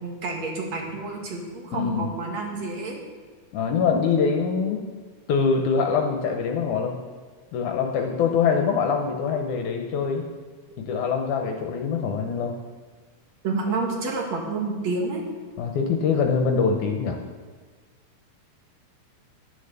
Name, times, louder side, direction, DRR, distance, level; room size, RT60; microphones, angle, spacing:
voice 1, 0.0-3.0 13.4-15.2, right 3 dB, 55° right, 0 dB, 3.1 m, -29 dB
voice 2, 1.7-2.1 3.5-4.8 5.3-7.0 7.5-10.2 10.8-12.5 15.6-17.2, left 5 dB, 75° left, 3 dB, 2.3 m, -24 dB
11.0 x 10.0 x 6.8 m, 1.5 s
omnidirectional pair, 3.7 m